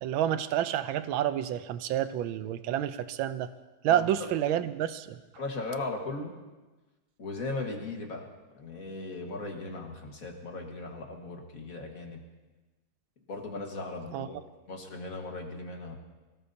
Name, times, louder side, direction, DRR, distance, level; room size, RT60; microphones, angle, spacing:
voice 1, 0.0-3.5 3.8-5.2 14.1-14.3, right 11 dB, 75° right, 12 dB, 1.4 m, -29 dB
voice 2, 3.9-4.3 5.4-6.3 7.2-8.3 8.5-12.2 13.3-14.4 14.7-16.0, left 3 dB, 40° left, 2 dB, 1.9 m, -37 dB
24.5 x 17.5 x 2.8 m, 1.2 s
omnidirectional pair, 2.4 m